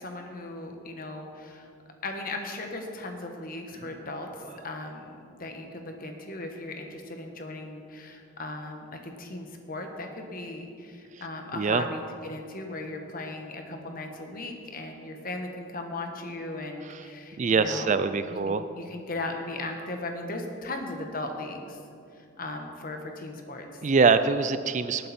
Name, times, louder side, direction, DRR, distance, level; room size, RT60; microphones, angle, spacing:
voice 1, 0.0-1.7 2.0-5.1 5.4-18.0 18.3-21.8 22.1-23.8, left 2 dB, 45° left, 4 dB, 1.4 m, -37 dB
voice 2, 11.5-11.8 16.9-17.0 17.4-18.6 23.8-25.1, right 4 dB, 35° right, 12 dB, 0.4 m, -23 dB
19.0 x 8.9 x 4.3 m, 2.5 s
head